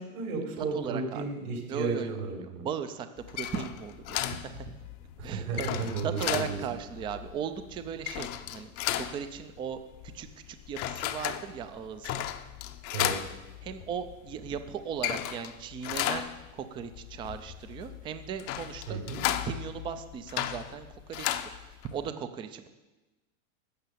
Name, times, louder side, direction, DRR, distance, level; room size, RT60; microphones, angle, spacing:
voice 1, 0.0-2.7 5.2-6.6 12.9-13.2 18.9-19.2, right 4 dB, 75° right, 2 dB, 4.3 m, -33 dB
voice 2, 0.6-1.2 1.7-2.1 2.6-4.8 5.2-9.8 10.0-12.3 13.6-19.0 19.4-22.7, right 8 dB, 15° right, 10 dB, 0.3 m, -37 dB
sound 1, 3.2-22.1, left 12 dB, 35° left, 0.6 m, -35 dB
12.0 x 6.7 x 8.3 m, 1.1 s
supercardioid pair, 135°, 42 cm